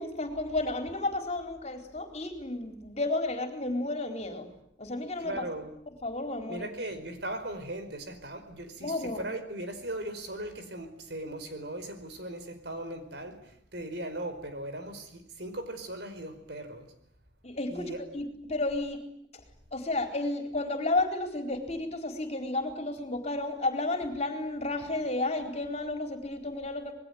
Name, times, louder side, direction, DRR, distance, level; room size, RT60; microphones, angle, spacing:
voice 1, 0.0-4.5 4.8-5.5 5.9-6.7 8.8-9.2 17.4-19.0 19.3-19.4 19.7-26.9, left 2 dB, 35° left, 6 dB, 4.3 m, -32 dB
voice 2, 5.2-5.7 6.5-13.4 13.7-16.9 17.7-18.0, right 1 dB, 60° right, 9 dB, 4.8 m, -38 dB
27.0 x 21.5 x 9.5 m, 0.70 s
head